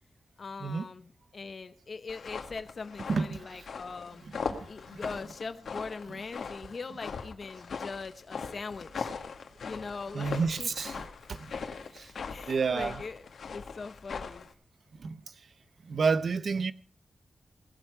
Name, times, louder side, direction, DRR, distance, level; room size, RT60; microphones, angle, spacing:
voice 1, 0.4-4.2 4.6-9.1 9.6-10.7 12.3-14.5, left 4 dB, 45° left, 0.9 m, -41 dB
sound 1, 2.1-14.5, left 5 dB, 85° left, 1.9 m, -40 dB
voice 2, 3.1-3.4 4.4-4.6 10.1-11.0 11.9-12.1 12.5-13.0 15.0-15.2 15.9-16.7, right 5 dB, 60° right, 0.7 m, -29 dB
18.5 x 13.0 x 4.7 m
wide cardioid pair, 175°, 0 cm